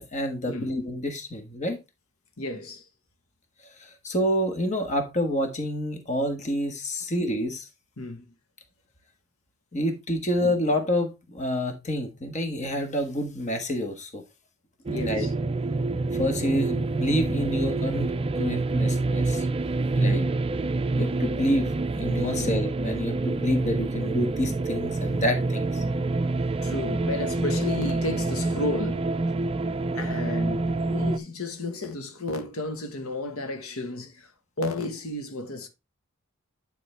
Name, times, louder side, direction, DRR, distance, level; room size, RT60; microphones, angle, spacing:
voice 1, 0.0-1.8 3.8-7.7 9.7-14.2 14.9-15.3 16.1-18.1 18.3-19.5 19.9-20.2 21.0-25.8, equal, 35° left, 1.5 m, -28 dB
voice 2, 2.4-2.9 8.0-8.2 14.9-15.3 20.0-20.3 22.3-22.5 26.6-29.2 29.9-34.3 34.6-35.7, left 2 dB, 85° left, 1.3 m, -32 dB
sound 1, 14.9-31.2, right 3 dB, 25° right, 0.4 m, -27 dB
9.7 x 5.0 x 3.3 m
head